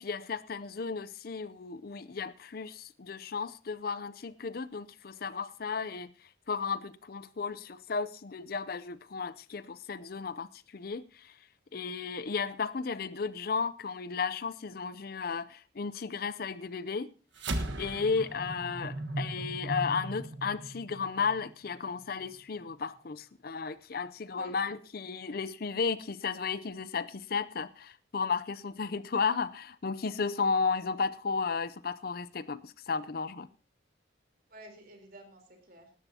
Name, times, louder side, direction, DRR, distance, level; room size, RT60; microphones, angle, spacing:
voice 1, 0.0-6.1 6.5-11.3 11.7-17.1 17.8-33.5, left 5 dB, 50° left, 0.5 m, -34 dB
sound 1, 17.3-22.0, right 2 dB, 75° right, 1.4 m, -37 dB
voice 2, 18.0-18.4 24.4-24.5 34.5-35.9, right 1 dB, 50° right, 3.6 m, -52 dB
18.5 x 12.5 x 2.8 m
head